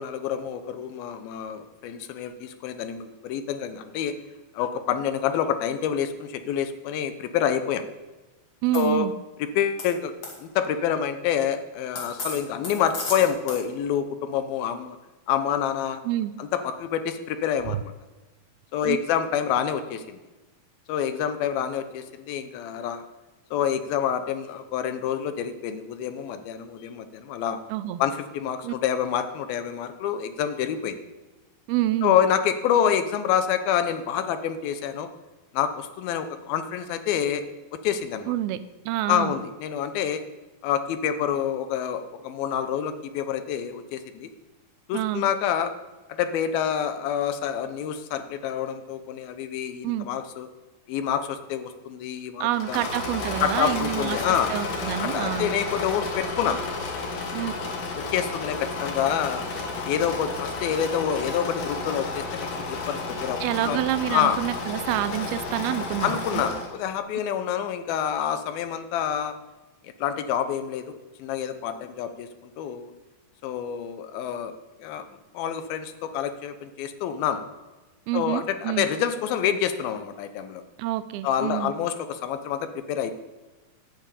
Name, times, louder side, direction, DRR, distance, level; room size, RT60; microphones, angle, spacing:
voice 1, 0.0-4.1 4.5-7.9 8.7-9.1 9.6-10.1 10.4-15.0 15.3-16.0 16.4-17.9 18.7-20.2 20.9-23.0 23.5-27.6 28.0-31.0 32.0-35.1 35.5-37.4 37.7-38.3 39.1-40.2 40.6-44.3 44.9-45.7 46.2-50.5 50.9-53.0 53.4-54.5 55.0-56.6 58.1-59.5 59.9-63.8 64.1-64.4 66.0-69.3 69.8-70.9 71.2-72.9 73.4-74.5 74.8-75.1 75.3-77.4 78.1-80.6 81.2-83.2, left 9 dB, 80° left, 9 dB, 2.6 m, -27 dB
voice 2, 8.6-9.1 16.1-16.3 17.7-17.8 18.8-19.0 27.7-28.0 28.6-28.7 31.7-32.2 38.3-38.6 38.9-39.3 44.9-45.2 49.8-50.1 52.4-54.2 54.5-55.5 57.3-57.5 63.4-66.4 78.1-78.9 80.8-81.7, right 14 dB, 90° right, 14 dB, 2.6 m, -27 dB
sound 1, 8.7-8.8 9.8-9.9 10.2-10.4 12.0-13.6, left 3 dB, 40° left, 2.6 m, -33 dB
Engine / Mechanisms, 52.5-66.8, left 3 dB, 55° left, 2.7 m, -32 dB
11.5 x 6.4 x 8.5 m, 1.1 s
omnidirectional pair, 4.3 m